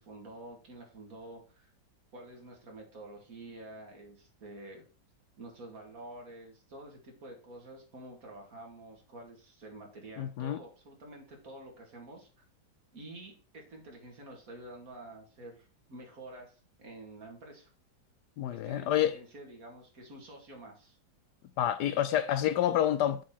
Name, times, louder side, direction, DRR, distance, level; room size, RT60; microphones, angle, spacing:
voice 1, 0.0-1.7 2.1-4.9 5.4-12.3 12.9-17.7 18.5-21.0 21.8-22.1, right 1 dB, 45° right, 2.6 m, -49 dB
voice 2, 10.2-10.6 18.4-19.1 21.6-23.2, left 11 dB, 75° left, 1.0 m, -28 dB
7.7 x 4.2 x 5.6 m
omnidirectional pair, 2.1 m